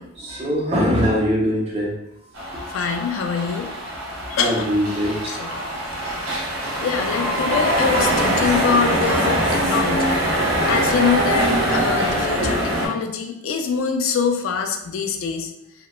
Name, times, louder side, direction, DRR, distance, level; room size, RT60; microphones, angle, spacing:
voice 1, 0.2-1.9 4.4-5.4 10.5-10.6 12.4-12.5, equal, 30° right, -3 dB, 0.6 m, -22 dB
sound 1, 2.3-12.9, equal, 80° right, 0.8 m, -23 dB
voice 2, 2.7-3.7 4.3-4.7 5.3-5.5 6.0-6.5 6.8-10.1 10.7-15.5, left 6 dB, 75° left, 5 dB, 0.3 m, -24 dB
2.9 x 2.1 x 2.3 m, 0.82 s
head